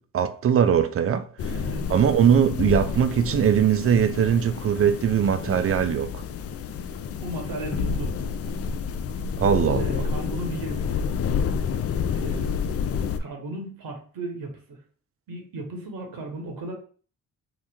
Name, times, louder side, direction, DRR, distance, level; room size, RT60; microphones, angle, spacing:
voice 1, 0.1-1.6 1.9-6.2 9.4-10.1, right 8 dB, 40° right, 0.4 m, -21 dB
sound 1, 1.4-13.2, left 6 dB, 40° left, 0.4 m, -29 dB
voice 2, 1.5-1.9 7.2-8.1 9.8-11.0 12.1-12.5 13.2-14.8 15.3-16.7, right 2 dB, 65° right, 0.9 m, -35 dB
3.0 x 2.1 x 3.5 m
hypercardioid pair, 40°, 37 cm